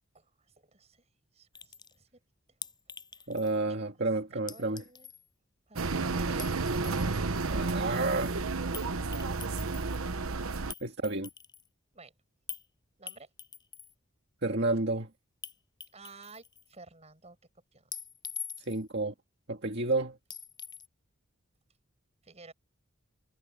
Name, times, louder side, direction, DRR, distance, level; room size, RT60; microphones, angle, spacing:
voice 1, 0.1-2.2 3.1-3.4 3.7-5.1 5.7-7.5 11.9-12.1 13.0-13.3 15.9-17.4 17.7-17.9 22.2-22.5, right 3 dB, 30° right, 6.5 m, -54 dB
Chink clink, 1.5-2.0 2.6-3.7 4.5-5.2 6.2-7.2 8.7-8.9 9.1-9.9 10.7-11.7 12.5-12.6 13.1-13.9 15.4-15.5 15.8-16.7 17.9-18.9 20.3-20.9, left 7 dB, 20° left, 7.4 m, -44 dB
voice 2, 3.3-4.8 7.5-8.4 10.8-11.3 14.4-15.1 18.7-19.1 19.5-20.2, right 2 dB, 55° right, 2.0 m, -30 dB
sound 1, 5.8-10.7, right 3 dB, 85° right, 1.1 m, -31 dB
head